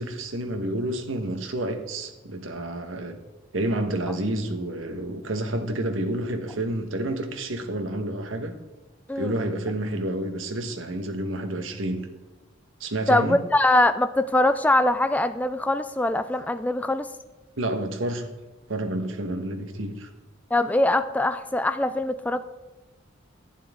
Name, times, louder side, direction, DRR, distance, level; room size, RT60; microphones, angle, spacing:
voice 1, 0.0-3.2 3.5-8.5 9.2-12.1 12.8-13.4 17.6-18.3 18.7-20.1, right 1 dB, 85° right, 6 dB, 1.2 m, -29 dB
voice 2, 13.1-17.1 20.5-22.4, left 1 dB, 10° left, 10 dB, 0.3 m, -22 dB
11.5 x 9.4 x 3.6 m, 1.2 s
head